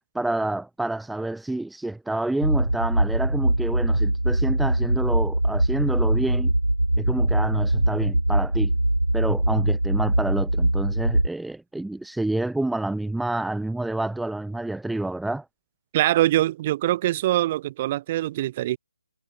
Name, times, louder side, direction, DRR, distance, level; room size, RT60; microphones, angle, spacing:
voice 1, 0.1-6.5 7.0-8.7 9.1-15.5, right 2 dB, ahead, 0.4 m, -28 dB
sound 1, 2.4-11.3, right 1 dB, 90° right, 0.4 m, -22 dB
voice 2, 15.9-18.8, right 14 dB, 30° right, 1.9 m, -23 dB
figure-of-eight pair, 145°, 0 cm